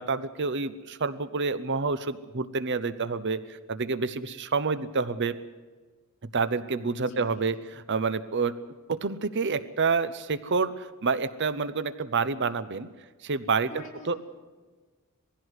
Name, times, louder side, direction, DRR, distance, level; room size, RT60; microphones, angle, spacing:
voice 1, 0.0-5.4 6.3-8.6 8.9-12.9 13.2-13.7 14.1-14.2, right 4 dB, 55° right, 14 dB, 0.8 m, -28 dB
voice 2, 7.0-7.4 13.7-14.2, equal, 35° left, -1 dB, 4.4 m, -45 dB
20.0 x 16.0 x 8.1 m, 1.4 s
head